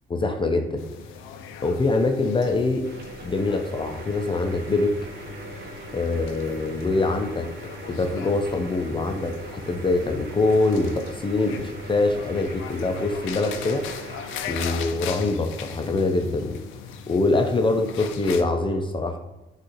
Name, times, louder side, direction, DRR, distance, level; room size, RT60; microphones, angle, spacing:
voice 1, 0.1-0.8 1.6-2.9 3.2-5.0 5.9-7.5 7.9-14.1 14.5-16.6 17.1-19.2, left 2 dB, 25° left, 4 dB, 0.4 m, -24 dB
sound 1, 0.8-18.4, left 7 dB, 90° left, 0.4 m, -39 dB
sound 2, 2.8-14.7, right 2 dB, 60° right, 0.8 m, -40 dB
6.0 x 2.5 x 3.0 m, 1.0 s
cardioid pair, 90°, 20 cm